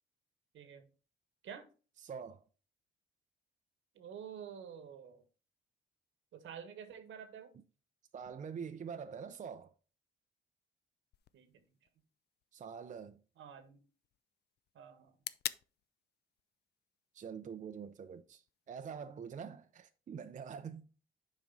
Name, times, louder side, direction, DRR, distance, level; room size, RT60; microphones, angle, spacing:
voice 1, 0.5-0.9 1.4-1.7 3.9-5.2 6.3-7.5 11.3-11.6 13.4-13.8 14.7-15.2, right 8 dB, 75° right, 1.3 m, -49 dB
voice 2, 2.0-2.4 8.1-9.7 12.5-13.2 17.1-20.9, right 6 dB, 40° right, 0.5 m, -45 dB
cocking dragoon, 11.1-19.1, left 11 dB, 55° left, 0.4 m, -50 dB
7.3 x 5.0 x 3.8 m
cardioid pair, 90°, 20 cm